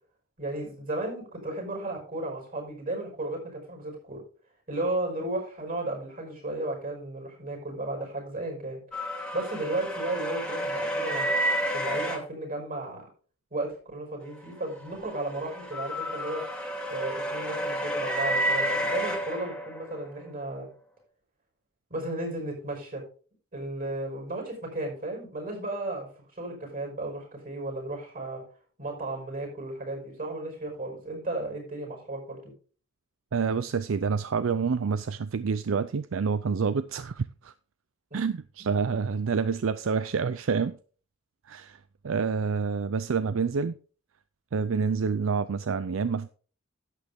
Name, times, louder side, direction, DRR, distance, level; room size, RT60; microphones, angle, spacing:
voice 1, 0.4-4.2 4.7-8.8 9.3-11.3 11.7-13.0 13.5-16.4 16.9-20.7 21.9-23.0 23.5-26.1 26.4-28.4 28.8-32.5, right 2 dB, 45° right, 5.6 m, -34 dB
sound 1, 8.9-12.2 14.6-20.1, right 1 dB, 5° left, 1.7 m, -30 dB
voice 2, 33.3-37.5 38.1-40.8 41.5-41.8 42.0-43.7 44.5-46.3, right 5 dB, 75° right, 0.5 m, -28 dB
11.5 x 8.3 x 3.5 m
head